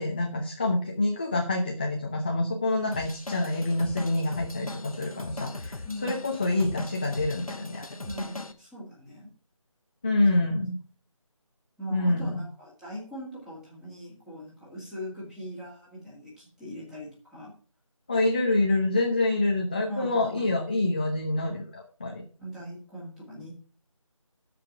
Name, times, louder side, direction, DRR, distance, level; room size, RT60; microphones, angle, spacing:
voice 1, 0.0-5.8 6.0-7.9 10.0-10.7 11.9-12.4 18.1-22.2, left 2 dB, 15° left, 1 dB, 0.7 m, -26 dB
Drum kit / Drum, 2.9-8.5, left 2 dB, 85° left, 1.4 m, -39 dB
voice 2, 5.8-6.2 8.1-9.3 11.8-17.5 19.9-20.4 22.4-23.5, equal, 5° right, -7 dB, 2.1 m, -40 dB
13.0 x 5.1 x 5.9 m, 0.40 s
figure-of-eight pair, 165°, 18 cm